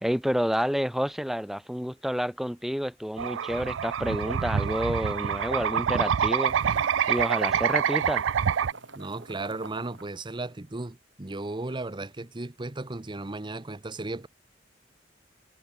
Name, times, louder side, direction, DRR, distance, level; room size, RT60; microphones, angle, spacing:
voice 1, 0.0-6.5 7.1-8.2, equal, ahead, 1.2 m, -29 dB
sound 1, 3.2-8.7, right 8 dB, 90° right, 0.4 m, -26 dB
sound 2, 6.4-10.8, right 3 dB, 75° right, 4.8 m, -46 dB
voice 2, 8.9-14.3, right 2 dB, 25° right, 0.8 m, -35 dB
head